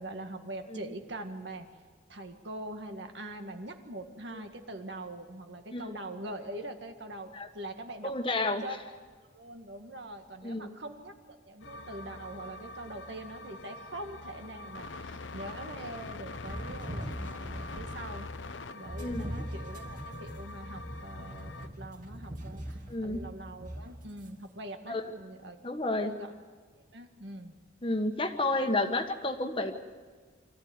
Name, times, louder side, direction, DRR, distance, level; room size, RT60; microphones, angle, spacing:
voice 1, 0.0-1.7 2.1-8.1 8.6-8.7 9.3-18.3 18.7-26.3 26.9-27.5, right 1 dB, 70° right, 5 dB, 1.8 m, -43 dB
voice 2, 8.0-8.6 10.4-10.7 19.0-19.3 22.9-23.2 24.9-25.1 25.6-26.1 27.8-29.7, left 2 dB, 25° left, 5 dB, 1.4 m, -30 dB
sound 1, 11.6-21.7, left 3 dB, 80° left, 0.9 m, -44 dB
sound 2, 16.5-18.1 18.9-24.3, right 1 dB, 45° right, 3.0 m, -41 dB
25.5 x 14.5 x 9.6 m, 1.5 s
head